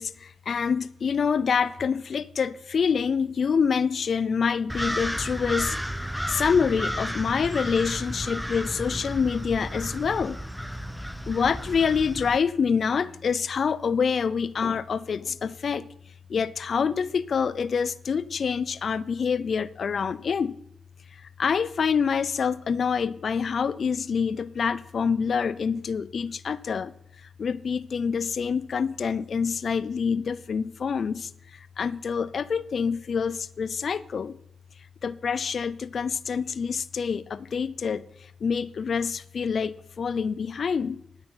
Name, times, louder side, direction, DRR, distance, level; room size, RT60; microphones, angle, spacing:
voice 1, 0.0-10.4 11.3-15.9 16.3-20.5 21.1-26.9 27.2-34.4 35.0-41.0, left 6 dB, 60° left, 0.5 m, -26 dB
sound 1, 4.7-12.4, equal, ahead, 0.9 m, -33 dB
9.6 x 8.9 x 8.7 m
cardioid pair, 60°, 0 cm